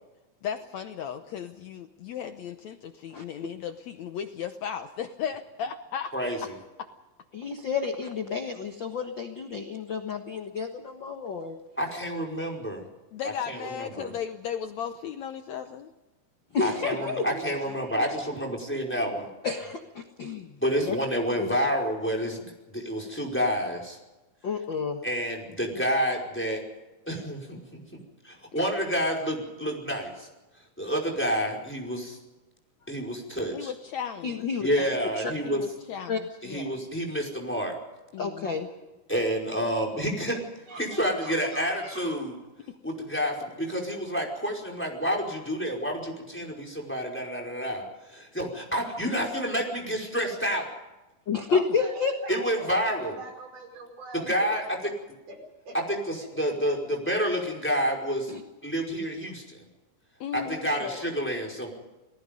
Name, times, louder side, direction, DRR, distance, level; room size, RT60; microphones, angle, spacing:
voice 1, 0.4-6.1 6.8-6.9 13.1-15.9 33.5-34.4 34.8-34.9 35.4-36.8 38.1-38.5 42.7-42.8 51.5-51.8 54.5-54.6 60.2-60.7, left 8 dB, 90° left, 8 dB, 1.5 m, -36 dB
voice 2, 7.3-11.6 16.5-17.3 19.4-20.5 20.9-21.0 21.4-21.5 24.4-25.0 34.2-34.6 35.2-35.3 36.1-36.2 38.2-38.7 51.3-52.1 58.3-58.4 60.8-61.1, left 5 dB, 60° left, 5 dB, 1.2 m, -30 dB
voice 3, 11.8-12.8 13.5-14.1 16.6-19.3 20.6-24.0 25.0-26.6 27.1-30.3 30.8-32.2 32.9-33.7 34.6-35.6 36.4-37.7 39.1-40.4 40.8-42.3 42.8-50.7 52.3-53.2 54.2-54.6 55.7-58.3 58.6-59.6 60.3-61.7, equal, 5° left, 1 dB, 4.6 m, -29 dB
voice 4, 16.6-18.0 40.7-42.1 51.8-54.5 55.3-55.8, right 2 dB, 55° right, 3 dB, 6.5 m, -42 dB
29.5 x 19.5 x 5.3 m, 1.1 s
omnidirectional pair, 4.5 m